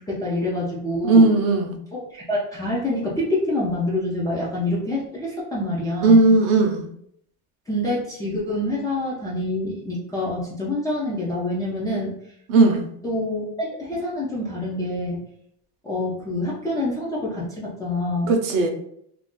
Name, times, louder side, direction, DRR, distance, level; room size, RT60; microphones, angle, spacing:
voice 1, 0.0-1.3 1.9-6.3 7.7-12.2 13.0-15.2 15.8-18.3, left 1 dB, 10° left, -7 dB, 0.3 m, -26 dB
voice 2, 1.0-1.8 6.0-6.8 12.5-12.8 18.3-18.7, right 3 dB, 55° right, 4 dB, 0.6 m, -16 dB
2.5 x 2.3 x 3.5 m, 0.70 s
cardioid pair, 155°, 38 cm